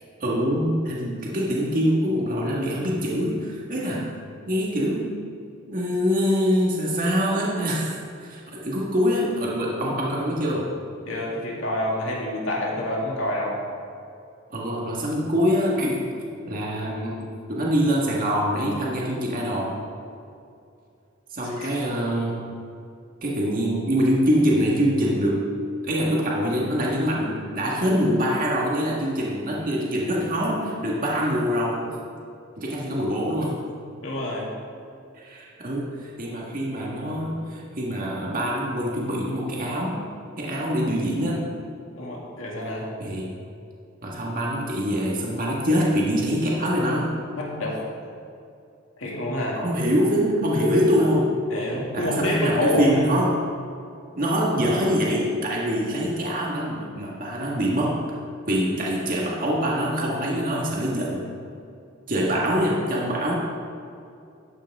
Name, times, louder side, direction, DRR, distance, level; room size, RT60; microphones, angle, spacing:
voice 1, 0.2-4.1 4.5-5.1 5.7-7.9 8.2-10.7 14.5-16.1 16.5-19.8 21.3-22.5 23.2-25.5 25.8-31.9 32.6-33.6 35.2-40.0 40.4-41.5 43.0-43.3 44.0-47.2 49.5-51.3 51.9-53.4 54.2-58.0 58.5-61.2 62.1-63.3, equal, 45° right, -4 dB, 1.7 m, -24 dB
voice 2, 11.1-13.6 21.4-21.8 34.0-34.5 42.0-42.9 47.4-47.8 49.0-49.6 51.5-53.1, left 1 dB, 75° left, -3 dB, 2.4 m, -27 dB
12.5 x 8.9 x 3.6 m, 2.5 s
head